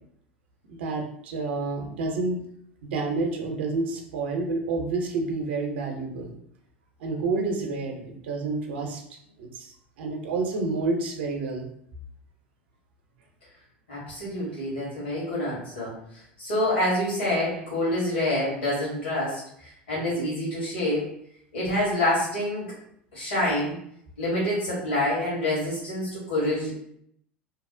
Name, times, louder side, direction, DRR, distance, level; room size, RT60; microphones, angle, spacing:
voice 1, 0.7-2.4 2.8-6.3 7.0-9.0 9.4-9.7 10.0-11.7, right 3 dB, 65° right, 2 dB, 0.6 m, -29 dB
voice 2, 13.9-21.0 21.5-22.7 23.1-23.8 24.2-26.7, left 1 dB, 80° left, -7 dB, 1.2 m, -27 dB
2.7 x 2.0 x 2.5 m, 0.70 s
figure-of-eight pair, 80°, 6 cm